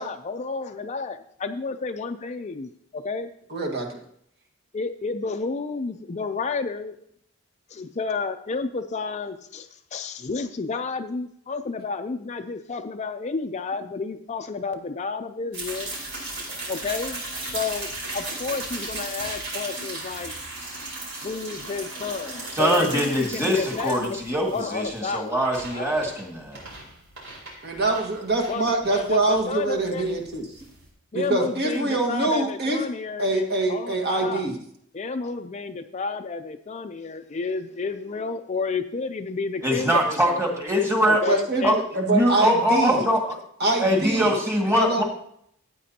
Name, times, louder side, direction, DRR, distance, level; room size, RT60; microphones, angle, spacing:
voice 1, 0.0-3.3 4.7-7.0 7.7-15.9 16.7-17.2 17.5-20.3 21.2-24.2 24.5-25.3 25.7-25.9 28.5-30.1 31.1-34.4 34.9-40.5 41.0-41.8, left 4 dB, 30° left, 8 dB, 0.4 m, -31 dB
voice 2, 3.5-4.0 27.6-30.5 31.1-32.8 33.2-34.5 41.3-43.0 43.6-44.3 44.8-45.0, right 2 dB, 50° right, 2 dB, 1.7 m, -24 dB
sound 1, 15.5-30.9, right 2 dB, 70° right, 4.8 m, -36 dB
voice 3, 22.5-26.6 39.6-41.2 41.6-43.4 43.8-45.0, equal, 15° right, -1 dB, 2.0 m, -23 dB
14.5 x 8.7 x 2.9 m, 0.68 s
head